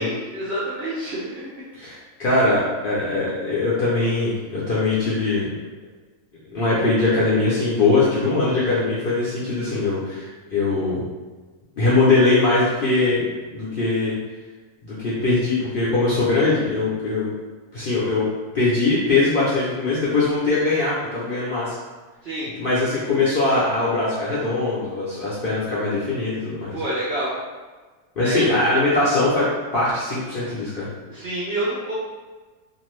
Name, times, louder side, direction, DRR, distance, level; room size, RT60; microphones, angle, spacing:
voice 1, 0.0-1.6 22.2-22.5 26.7-27.3 28.2-28.5 31.1-31.9, right 1 dB, 65° right, -8 dB, 0.6 m, -28 dB
voice 2, 1.8-5.4 6.5-11.0 11.8-14.2 14.8-17.3 17.7-18.3 18.5-21.8 22.6-26.8 28.2-29.5 29.7-30.9, left 3 dB, 55° left, -9 dB, 0.6 m, -21 dB
2.6 x 2.5 x 3.1 m, 1.3 s
omnidirectional pair, 1.6 m